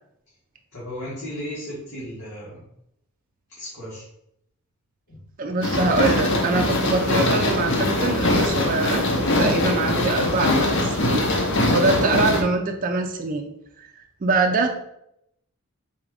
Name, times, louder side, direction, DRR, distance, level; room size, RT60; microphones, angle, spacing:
voice 1, 0.7-2.6 3.6-4.1 5.1-5.3, equal, 90° left, -9 dB, 1.6 m, -35 dB
voice 2, 5.4-11.2 11.7-13.5 13.8-13.9 14.2-14.7, right 3 dB, 35° right, 4 dB, 0.4 m, -24 dB
sound 1, 5.6-12.4, left 1 dB, 55° left, 0.8 m, -22 dB
4.1 x 2.5 x 4.6 m, 0.78 s
head